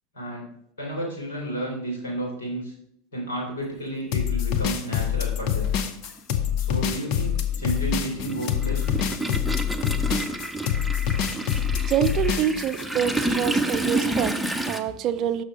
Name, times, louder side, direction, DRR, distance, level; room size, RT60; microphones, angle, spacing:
voice 1, 0.1-0.5 0.8-2.7 3.1-5.7 6.6-9.1, right 1 dB, 75° left, 3.4 m, -32 dB
sound 1, 4.1-12.8, left 9 dB, 55° left, 0.8 m, -25 dB
Toilet flush, 4.3-4.4 5.7-5.8 6.2-14.8, right 2 dB, ahead, 0.8 m, -29 dB
voice 2, 11.5-15.4, right 9 dB, 45° right, 0.5 m, -26 dB
6.4 x 6.3 x 5.0 m
hypercardioid pair, 85°, 0 cm